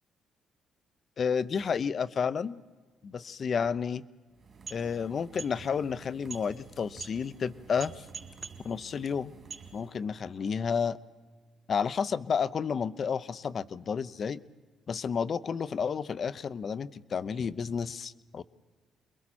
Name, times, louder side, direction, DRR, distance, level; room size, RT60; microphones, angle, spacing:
voice 1, 1.2-2.6 3.0-4.0 4.7-8.0 8.6-9.3 9.7-11.0 11.7-14.4 14.9-18.4, left 6 dB, 50° left, 15 dB, 0.7 m, -31 dB
sound 1, 4.3-10.1, right 5 dB, 50° right, 2.6 m, -46 dB
29.0 x 22.0 x 4.4 m, 1.4 s
cardioid pair, 90°, 0 cm